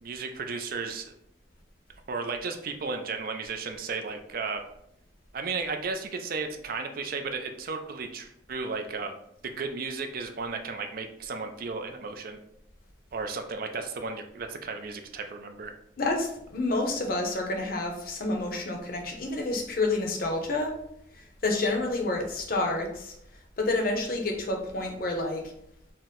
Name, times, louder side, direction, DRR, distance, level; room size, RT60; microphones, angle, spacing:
voice 1, 0.0-1.1 2.1-4.6 5.3-9.2 9.4-12.4 13.1-15.7, right 4 dB, 50° right, 6 dB, 0.4 m, -34 dB
voice 2, 16.0-20.7 21.1-23.2 23.6-25.4, left 2 dB, 50° left, 2 dB, 0.7 m, -29 dB
4.3 x 2.1 x 3.7 m, 0.74 s
head